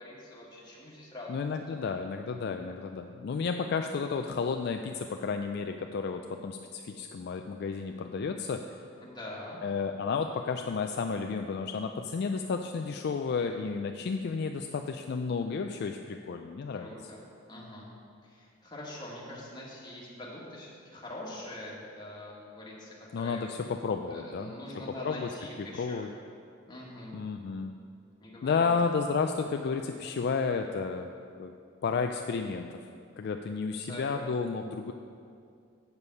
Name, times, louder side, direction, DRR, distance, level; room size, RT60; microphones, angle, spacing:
voice 1, 0.0-1.7 9.0-9.6 16.7-17.2 17.5-17.9 18.2-23.4 24.1-26.1 26.7-27.2 28.2-28.7 33.8-34.2, left 1 dB, 20° left, -5 dB, 1.8 m, -44 dB
voice 2, 1.3-8.6 9.6-16.9 23.1-24.5 25.0-25.3 25.8-26.1 27.1-27.7 28.4-31.1 31.4-31.5 31.8-32.8 33.2-34.9, left 5 dB, 55° left, 5 dB, 0.3 m, -32 dB
8.0 x 7.0 x 5.5 m, 2.4 s
head